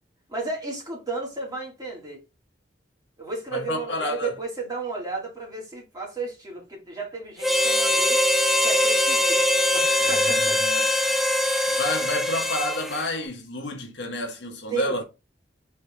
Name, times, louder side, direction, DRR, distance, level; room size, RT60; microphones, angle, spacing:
voice 1, 0.3-2.2 3.2-8.2 8.6-9.4 9.7-10.6 14.7-15.0, right 3 dB, 20° right, 2.0 m, -33 dB
voice 2, 3.5-4.4 10.0-10.9 11.7-15.0, left 1 dB, 75° left, 1.1 m, -30 dB
Harmonica, 7.4-13.1, left 1 dB, ahead, 0.5 m, -22 dB
4.4 x 3.4 x 3.3 m
head